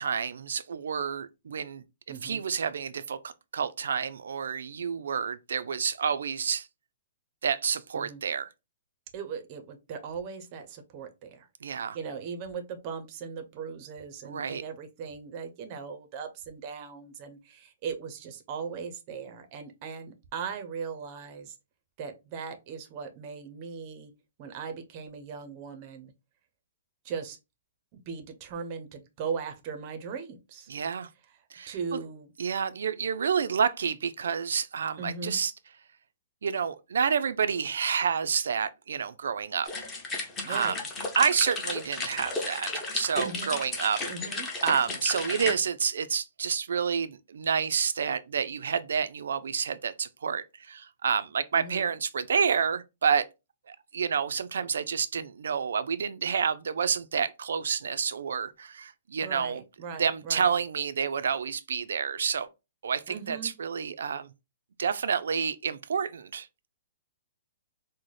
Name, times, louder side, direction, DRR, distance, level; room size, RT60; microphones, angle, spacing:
voice 1, 0.0-1.8 2.2-6.7 7.4-8.5 11.6-12.0 14.2-14.6 30.7-31.1 31.5-31.8 32.4-35.5 36.4-39.7 40.5-40.8 41.2-44.0 44.6-53.2 53.7-59.6 60.0-62.5 62.8-64.3 64.8-66.7, right 6 dB, 80° right, 0.3 m, -29 dB
voice 2, 2.1-2.4 7.9-8.2 9.1-11.5 11.9-21.5 22.0-24.1 24.4-26.1 27.0-27.4 27.9-30.7 31.7-32.3 35.0-35.4 40.4-40.8 43.2-43.6 44.1-44.5 51.5-51.9 59.2-60.5 63.1-63.5, right 6 dB, 30° right, 0.5 m, -38 dB
sound 1, 39.6-45.5, left 3 dB, 15° left, 0.7 m, -34 dB
3.9 x 2.0 x 3.1 m
hypercardioid pair, 165°, 0 cm